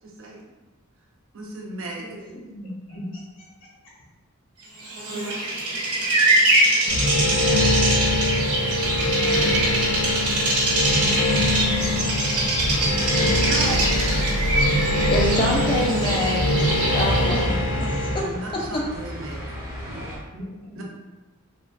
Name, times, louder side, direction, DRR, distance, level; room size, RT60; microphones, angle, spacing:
voice 1, 0.0-0.5 1.3-2.2 13.2-13.9 18.2-19.5 19.9-20.1 20.8-20.9, right 2 dB, 60° right, -1 dB, 0.5 m, -35 dB
voice 2, 2.0-3.4 20.3-20.8, equal, 60° left, -6 dB, 0.9 m, -38 dB
Bird vocalization bird call bird song, 4.8-17.5, right 1 dB, 90° right, 0.7 m, -23 dB
sound 1, 6.9-18.2, left 1 dB, 80° left, 0.5 m, -23 dB
sound 2, 10.8-20.2, equal, 10° right, 0.6 m, -32 dB
voice 3, 15.1-16.5 16.9-18.3, left 1 dB, 20° left, -1 dB, 0.3 m, -26 dB
3.1 x 2.3 x 2.3 m, 1.1 s
head